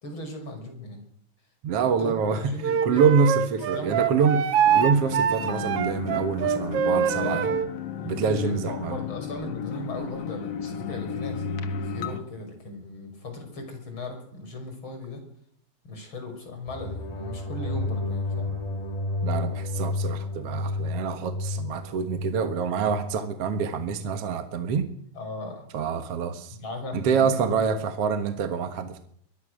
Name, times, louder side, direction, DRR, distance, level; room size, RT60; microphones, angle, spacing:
voice 1, 0.0-1.0 1.8-3.1 3.7-4.1 7.2-7.6 8.0-15.2 15.8-18.5 25.1-25.7 26.6-27.8, left 2 dB, 30° left, 5 dB, 6.4 m, -37 dB
voice 2, 1.6-2.4 2.8-4.4 4.7-7.5 8.0-9.0 19.2-24.9 25.7-26.6 26.9-29.0, right 6 dB, 55° right, 8 dB, 2.0 m, -26 dB
Wind instrument woodwind instrument, 2.6-7.7, right 8 dB, 70° right, 1.4 m, -24 dB
sound 1, 4.6-12.2, left 6 dB, 55° left, 2.0 m, -33 dB
sound 2, 16.7-23.9, left 2 dB, 85° left, 0.3 m, -31 dB
24.0 x 21.0 x 6.4 m, 0.66 s
omnidirectional pair, 4.2 m